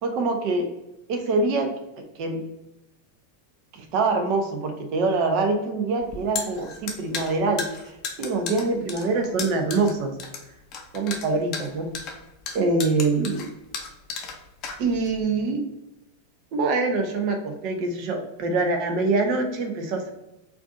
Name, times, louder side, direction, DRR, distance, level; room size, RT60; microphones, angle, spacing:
voice 1, 0.0-0.7 1.1-1.7 2.2-2.4 3.7-7.9 8.2-10.1 10.9-11.9 12.5-13.5 14.8-15.6 16.5-20.1, right 3 dB, 45° right, 4 dB, 0.7 m, -24 dB
sound 1, 6.0-15.2, left 5 dB, 35° left, 0.6 m, -34 dB
4.5 x 2.7 x 2.5 m, 0.94 s
figure-of-eight pair, 90°, 0 cm